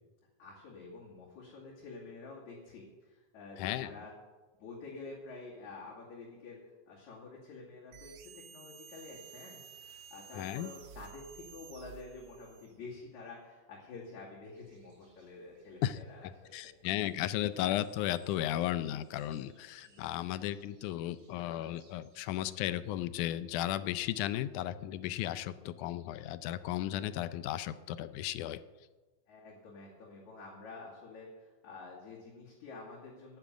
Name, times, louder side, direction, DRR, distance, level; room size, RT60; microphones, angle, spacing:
voice 1, 0.4-4.1 4.6-16.6 19.8-20.0 29.3-33.4, left 3 dB, 70° left, -6 dB, 3.7 m, -49 dB
voice 2, 3.6-3.9 10.3-10.7 15.8-28.6, left 13 dB, 85° left, 14 dB, 2.1 m, -35 dB
sound 1, 7.9-12.8, right 8 dB, 85° right, 1.0 m, -53 dB
sound 2, 14.5-22.6, right 3 dB, 65° right, 6.3 m, -65 dB
10.0 x 9.5 x 9.4 m, 1.3 s
omnidirectional pair, 3.5 m